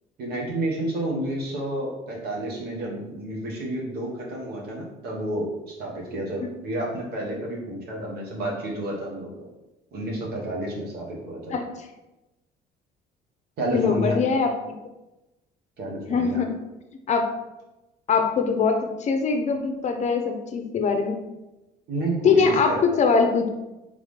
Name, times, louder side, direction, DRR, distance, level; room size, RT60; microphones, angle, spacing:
voice 1, 0.2-9.3 9.9-11.5 13.6-14.1 15.8-16.5 21.9-23.0, right 1 dB, 70° right, -2 dB, 1.4 m, -30 dB
voice 2, 13.7-14.5 16.1-16.5 17.1-17.3 18.1-21.2 22.2-23.5, left 5 dB, 45° left, 5 dB, 0.6 m, -22 dB
3.5 x 3.3 x 3.6 m, 1.0 s
cardioid pair, 110°, 17 cm